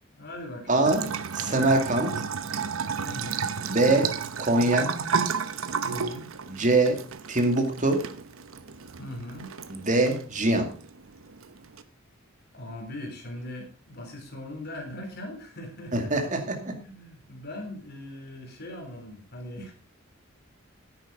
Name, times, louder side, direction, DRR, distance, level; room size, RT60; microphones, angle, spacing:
voice 1, 0.2-0.8 3.0-3.5 5.8-6.3 9.0-9.5 12.5-16.1 16.5-19.7, left 1 dB, 50° left, 3 dB, 3.7 m, -40 dB
voice 2, 0.7-1.0 1.3-2.1 3.7-4.1 4.4-4.9 6.5-7.0 7.3-8.0 9.7-10.7 15.9-16.4, right 2 dB, 40° right, 4 dB, 2.4 m, -23 dB
Bathtub (filling or washing) / Trickle dribble, 0.9-11.8, right 6 dB, 75° right, 0.9 m, -33 dB
10.5 x 9.3 x 5.0 m, 0.38 s
head